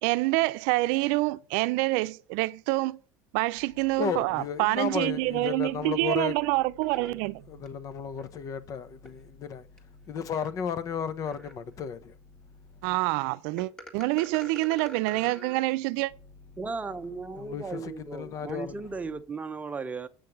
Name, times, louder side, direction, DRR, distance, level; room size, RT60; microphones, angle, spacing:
voice 1, 0.0-3.0 3.3-7.4 12.8-16.1, right 21 dB, 75° right, 0.6 m, -27 dB
voice 2, 4.0-6.3 7.5-9.7 10.1-12.2 17.4-18.8, left 7 dB, 45° left, 1.1 m, -34 dB
sound 1, 5.5-5.7 6.8-7.7 8.2-8.3 9.1-9.2 9.8-9.9 10.3-10.5 11.3-11.7 13.6-15.6, equal, 10° left, 1.9 m, -46 dB
voice 3, 16.6-20.1, right 4 dB, 20° right, 0.9 m, -36 dB
8.5 x 5.9 x 5.4 m
supercardioid pair, 115°, 8 cm